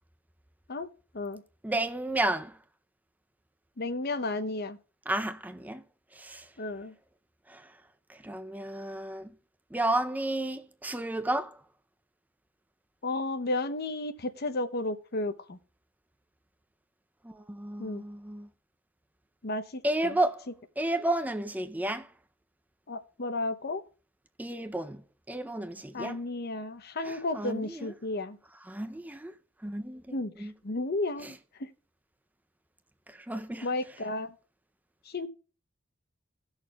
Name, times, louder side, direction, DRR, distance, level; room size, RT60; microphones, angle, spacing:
voice 1, 1.6-2.6 5.1-5.8 6.2-6.4 7.5-7.6 8.1-9.3 9.7-11.5 17.2-18.5 19.8-20.4 20.8-22.1 24.4-25.0 25.3-26.2 27.0-27.9 28.7-29.3 29.6-30.5 31.2-31.3 33.3-33.7, right 1 dB, 10° right, 0.5 m, -32 dB
voice 2, 3.8-4.8 6.6-6.9 13.0-15.6 17.8-18.0 19.4-20.2 22.9-23.8 25.9-28.4 30.1-31.7 33.6-34.3 35.1-35.3, left 2 dB, 50° left, 0.8 m, -33 dB
18.0 x 6.4 x 2.3 m
head